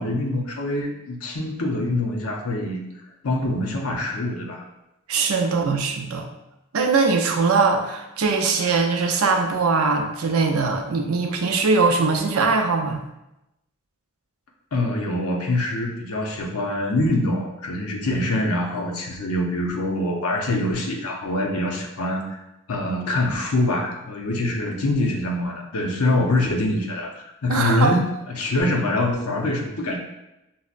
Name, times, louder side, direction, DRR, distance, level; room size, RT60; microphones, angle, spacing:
voice 1, 0.0-2.8 3.2-4.6 14.7-22.4 22.7-30.0, left 1 dB, 90° left, 1 dB, 0.7 m, -24 dB
voice 2, 5.1-6.2 6.7-13.0 27.5-28.0, right 4 dB, 80° right, 3 dB, 0.5 m, -21 dB
5.5 x 2.0 x 2.4 m, 0.90 s
head